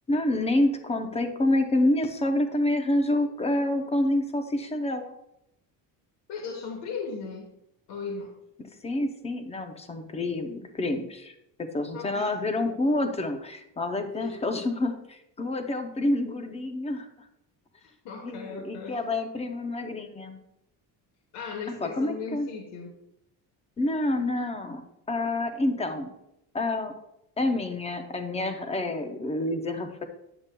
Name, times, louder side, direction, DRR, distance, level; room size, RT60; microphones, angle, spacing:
voice 1, 0.1-5.1 8.6-17.1 18.2-20.4 21.8-22.5 23.8-26.1 26.5-26.9 27.4-30.0, left 1 dB, 15° left, 6 dB, 0.5 m, -28 dB
voice 2, 6.3-7.5 7.9-8.4 11.9-12.3 14.1-14.4 17.8-19.0 21.3-22.9, left 5 dB, 70° left, 1 dB, 1.2 m, -37 dB
8.9 x 7.8 x 2.2 m, 0.82 s
cardioid pair, 170°, 43 cm